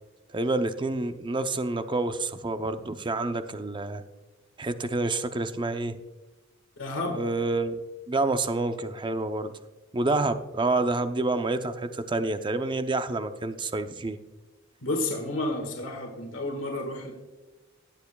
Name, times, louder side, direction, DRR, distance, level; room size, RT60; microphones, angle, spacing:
voice 1, 0.3-4.0 4.6-6.0 7.2-7.8 8.1-9.5 9.9-14.2, right 2 dB, 25° right, 9 dB, 0.6 m, -28 dB
voice 2, 6.8-7.2 14.8-17.1, left 2 dB, 85° left, 3 dB, 1.7 m, -31 dB
18.5 x 8.0 x 2.3 m, 1.2 s
head